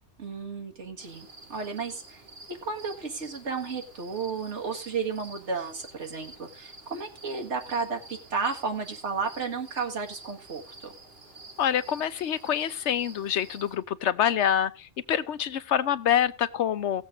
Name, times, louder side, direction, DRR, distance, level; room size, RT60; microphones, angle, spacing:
voice 1, 0.2-2.2 2.5-10.9, right 5 dB, 85° right, 1.9 m, -33 dB
sound 1, 1.0-13.8, right 2 dB, 60° right, 2.6 m, -49 dB
voice 2, 11.6-17.0, left 9 dB, 80° left, 1.1 m, -26 dB
17.0 x 7.5 x 3.7 m
omnidirectional pair, 1.2 m